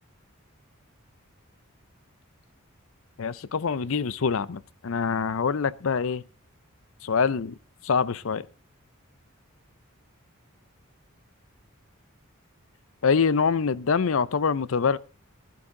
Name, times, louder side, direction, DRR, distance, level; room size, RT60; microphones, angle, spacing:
voice 1, 3.2-6.2 7.0-7.6 7.8-8.5 13.0-15.0, left 5 dB, 65° left, 0.5 m, -25 dB
16.0 x 11.5 x 3.8 m
head